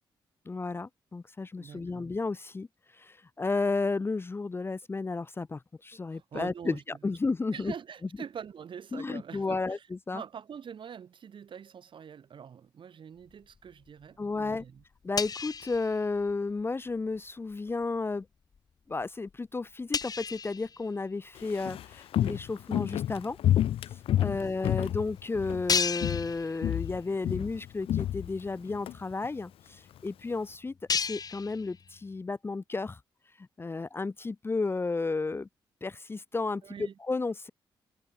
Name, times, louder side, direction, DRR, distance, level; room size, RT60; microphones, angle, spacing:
voice 1, 0.5-2.7 2.9-7.7 8.9-10.2 14.2-14.6 15.0-18.3 18.9-23.4 24.2-33.0 33.4-35.5 35.8-37.5, left 3 dB, 25° left, 0.6 m, -33 dB
voice 2, 1.6-2.1 6.1-6.8 7.5-9.8 10.1-14.8 24.2-24.5 36.6-36.9, right 7 dB, 60° right, 3.5 m, -44 dB
sound 1, 13.3-14.0 14.3-16.6 16.9-17.2 17.7-18.0 18.5-18.6 19.0-19.1 19.3-19.4 19.9-21.6 22.2-22.3 23.4-23.5 23.7-23.8 24.4-24.5 24.9-25.0 25.6-27.1 27.4-27.6 28.1-28.2 28.4-32.2, left 6 dB, 45° left, 1.0 m, -35 dB
Walk footsteps, 21.4-25.7 26.0-26.3 26.6-28.9 29.2-29.3, left 12 dB, 80° left, 0.5 m, -29 dB
cardioid pair, 75°, 9 cm